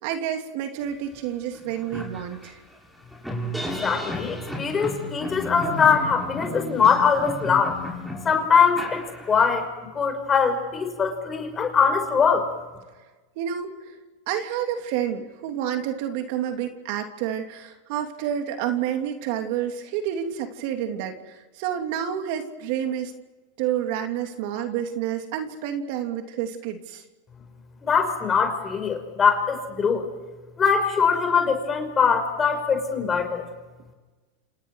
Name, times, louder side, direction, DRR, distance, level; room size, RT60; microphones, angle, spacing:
voice 1, 0.0-2.6 13.4-13.9 14.3-23.1 23.6-27.0, right 9 dB, 65° right, 5 dB, 3.0 m, -29 dB
sound 1, 1.1-1.2 1.5-9.6, left 1 dB, ahead, 6.8 m, -34 dB
voice 2, 3.8-7.8 8.2-9.0 9.3-9.7 9.9-12.5 27.8-30.1 30.6-33.4, left 6 dB, 25° left, 5 dB, 5.5 m, -22 dB
28.5 x 27.5 x 4.9 m, 1.2 s
supercardioid pair, 120°, 0 cm